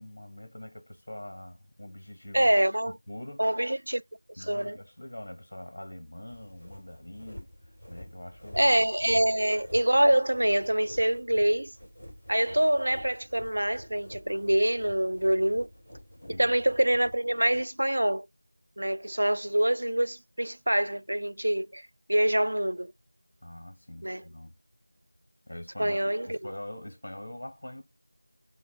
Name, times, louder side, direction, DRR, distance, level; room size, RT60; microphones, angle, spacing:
voice 1, 0.0-2.5 2.9-3.5 4.4-8.9 9.1-9.2 16.2-16.6 23.4-24.6 25.5-27.8, left 1 dB, 35° left, 0.8 m, -44 dB
voice 2, 2.3-2.9 3.4-4.0 4.5-4.8 8.5-11.7 12.3-15.7 16.4-18.3 18.8-21.8 22.1-22.9 24.0-24.2 25.8-26.4, right 1 dB, 60° right, 0.3 m, -25 dB
sound 1, 6.3-17.7, equal, 15° right, 1.7 m, -49 dB
4.6 x 2.0 x 3.4 m
figure-of-eight pair, 180°, 0 cm